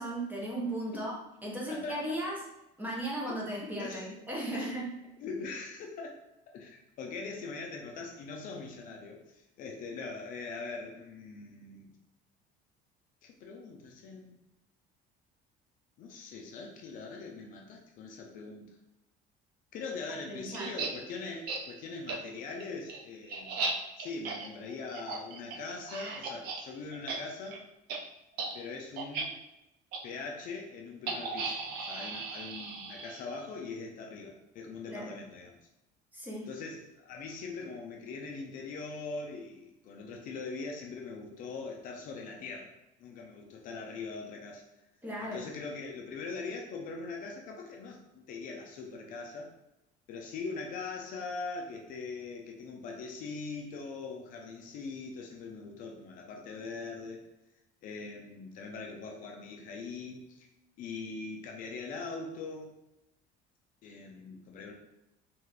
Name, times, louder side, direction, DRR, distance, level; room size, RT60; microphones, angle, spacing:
voice 1, 0.0-2.3 2.8-4.9 20.3-20.7 34.9-35.2 36.1-36.5 45.0-45.4, right 1 dB, 10° right, -3 dB, 0.5 m, -36 dB
voice 2, 1.7-2.0 3.8-4.2 4.5-4.7 5.2-6.2 6.5-11.9 13.2-14.4 16.0-18.8 19.7-23.6 24.0-27.6 28.5-29.3 30.0-35.6 36.5-42.7 43.0-44.7 45.2-49.5 50.1-57.2 57.8-60.5 60.8-62.8 63.8-64.7, left 4 dB, 45° left, 1 dB, 0.4 m, -42 dB
sound 1, 20.5-20.9 21.5-21.6 22.1-22.2 22.6-26.6 26.9-27.2 27.4-27.6 27.9-28.0 28.3-28.5 29.0-29.2 29.9-30.0 31.1-33.4, right 4 dB, 60° right, 0.5 m, -36 dB
2.6 x 2.3 x 3.3 m, 0.90 s
cardioid pair, 165°, 18 cm